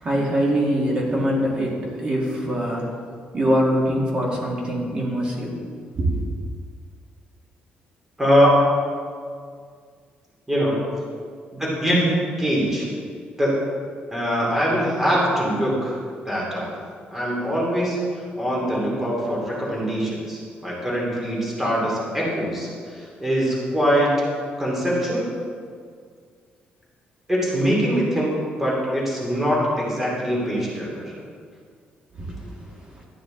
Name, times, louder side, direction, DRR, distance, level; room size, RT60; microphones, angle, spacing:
voice 1, 0.0-2.9 3.3-5.6 6.0-6.2 32.2-32.4, equal, 30° right, -3 dB, 2.0 m, -23 dB
voice 2, 8.2-8.6 10.5-10.7 11.5-12.9 13.4-13.6 14.1-16.0 16.2-16.6 17.1-18.0 18.3-24.1 24.6-25.3 27.3-31.1, equal, 10° right, -5 dB, 2.5 m, -22 dB
13.0 x 9.4 x 3.8 m, 2.1 s
cardioid pair, 170°, 3 cm